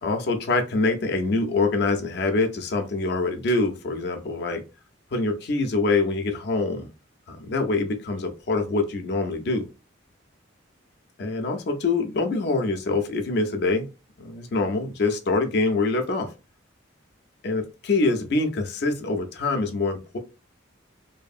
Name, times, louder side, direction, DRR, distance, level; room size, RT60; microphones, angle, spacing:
voice 1, 0.0-4.6 5.1-6.9 7.3-9.7 11.2-13.9 14.2-16.3 17.4-20.2, left 3 dB, 55° left, 4 dB, 0.4 m, -25 dB
2.6 x 2.5 x 2.4 m, 0.30 s
head